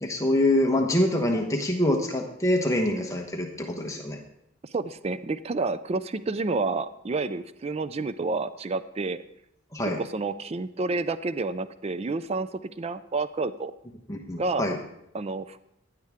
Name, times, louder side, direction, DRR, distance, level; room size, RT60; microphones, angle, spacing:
voice 1, 0.0-4.2 9.7-10.0 14.1-14.8, left 1 dB, 15° left, 2 dB, 1.1 m, -25 dB
voice 2, 4.7-9.2 9.8-13.7 14.4-14.6 15.1-15.6, right 3 dB, 30° right, 13 dB, 0.4 m, -29 dB
16.0 x 10.5 x 3.6 m, 0.79 s
head